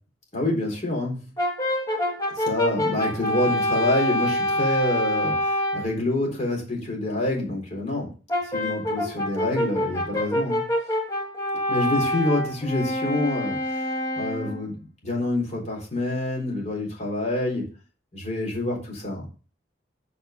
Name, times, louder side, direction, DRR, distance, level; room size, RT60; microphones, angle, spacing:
voice 1, 0.3-1.3 2.4-8.1 8.5-10.6 11.7-13.9 14.2-17.7 18.1-19.3, left 2 dB, 40° left, -1 dB, 3.8 m, -27 dB
Brass instrument, 1.4-5.9 8.3-14.6, left 1 dB, 20° left, 1.8 m, -26 dB
8.7 x 5.5 x 5.1 m, 0.36 s
head